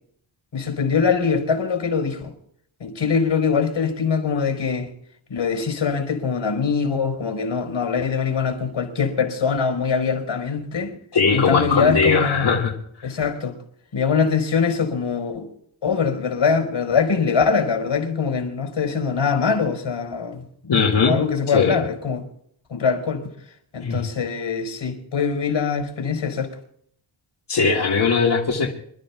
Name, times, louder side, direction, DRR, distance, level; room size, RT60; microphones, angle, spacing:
voice 1, 0.5-2.3 2.8-4.9 5.3-11.0 11.3-12.5 13.0-13.5 13.9-15.5 15.8-20.7 21.0-22.2 22.7-23.3 23.7-26.5, left 5 dB, 75° left, 4.4 m, -23 dB
voice 2, 11.1-12.7 20.7-21.1 21.5-21.8 23.8-24.0 27.5-28.7, left 5 dB, 60° left, 2.0 m, -19 dB
27.5 x 13.0 x 2.4 m
wide cardioid pair, 160°, 48 cm